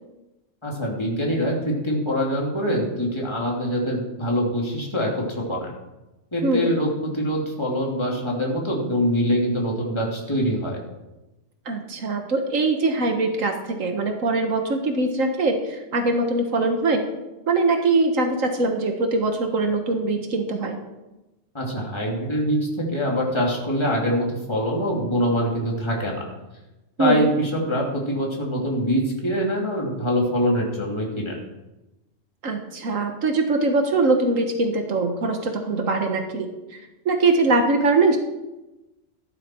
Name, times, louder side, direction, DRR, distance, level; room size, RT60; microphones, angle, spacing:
voice 1, 0.6-5.7 6.3-10.8 21.5-22.6 22.9-26.2 27.0-31.4, equal, 20° left, -2 dB, 2.8 m, -24 dB
voice 2, 11.7-17.0 17.5-20.8 27.0-27.3 32.4-36.8 37.1-38.2, right 3 dB, 85° right, 4 dB, 1.7 m, -22 dB
14.5 x 11.5 x 4.5 m, 1.0 s
omnidirectional pair, 1.3 m